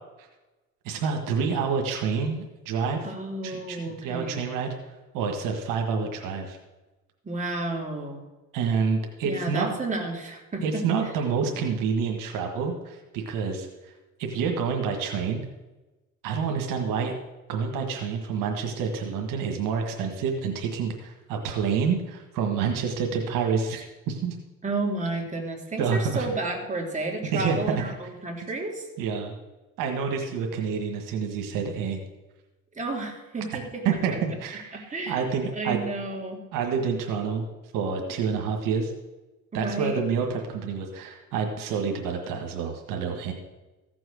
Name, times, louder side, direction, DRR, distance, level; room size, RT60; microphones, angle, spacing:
voice 1, 0.8-3.1 3.4-3.8 4.0-4.7 5.1-6.6 8.5-9.8 10.6-13.7 14.2-15.4 16.2-17.2 17.5-24.3 25.8-26.3 27.3-27.8 29.0-29.3 29.8-32.0 33.8-35.8 36.5-37.5 37.7-38.9 39.5-43.3, right 6 dB, 85° right, 3 dB, 1.6 m, -28 dB
voice 2, 3.0-4.4 7.2-8.2 9.2-10.8 24.6-28.9 32.7-33.8 34.9-35.2 35.5-36.4 39.5-40.0, right 2 dB, 25° right, 0 dB, 3.1 m, -31 dB
15.0 x 6.2 x 6.4 m, 1.1 s
cardioid pair, 85°, 32 cm